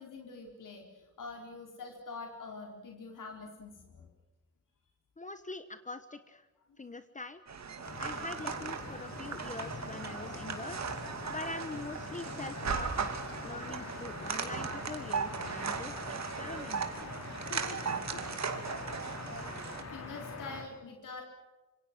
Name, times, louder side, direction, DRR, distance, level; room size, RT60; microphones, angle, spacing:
voice 1, 0.0-4.1 7.7-7.9 13.8-14.0 19.9-21.2, left 3 dB, 90° left, 1 dB, 4.3 m, -46 dB
voice 2, 5.2-6.5 6.8-7.4 8.0-10.8 11.3-13.2 13.4-15.9 16.4-16.9, left 3 dB, 25° left, 10 dB, 1.1 m, -43 dB
sound 1, 7.5-19.8, right 5 dB, 60° right, 2.7 m, -38 dB
sound 2, 7.8-20.6, left 3 dB, 55° left, 4.4 m, -44 dB
27.0 x 25.5 x 6.1 m, 1.1 s
wide cardioid pair, 140°, 31 cm